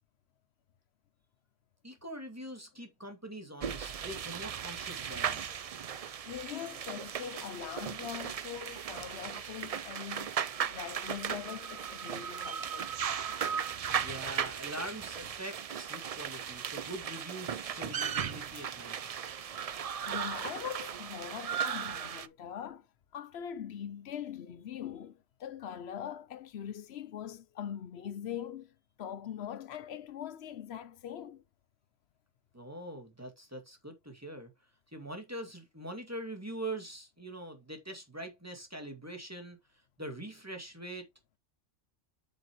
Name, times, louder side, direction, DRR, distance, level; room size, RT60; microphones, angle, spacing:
voice 1, 1.8-5.5 14.0-19.0 32.5-34.5 34.9-39.6 40.0-41.1, right 1 dB, 10° right, 2.1 m, -43 dB
sound 1, 3.6-22.3, right 8 dB, 70° right, 0.3 m, -37 dB
voice 2, 6.3-12.9 20.1-22.9 23.1-31.4, left 9 dB, 60° left, 0.9 m, -42 dB
8.2 x 6.6 x 3.0 m
omnidirectional pair, 1.3 m